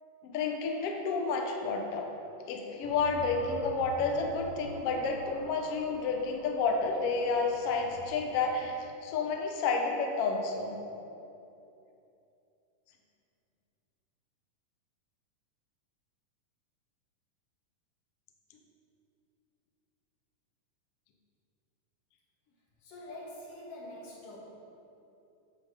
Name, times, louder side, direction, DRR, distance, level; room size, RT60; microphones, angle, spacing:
voice 1, 0.2-2.1 2.5-8.7 9.0-10.8, left 4 dB, 70° left, 2 dB, 1.5 m, -30 dB
sound 1, 2.8-8.6, equal, 60° right, 3.0 m, -48 dB
voice 2, 22.8-24.4, left 1 dB, 85° left, -5 dB, 3.5 m, -45 dB
9.0 x 5.8 x 6.5 m, 2.8 s
omnidirectional pair, 3.6 m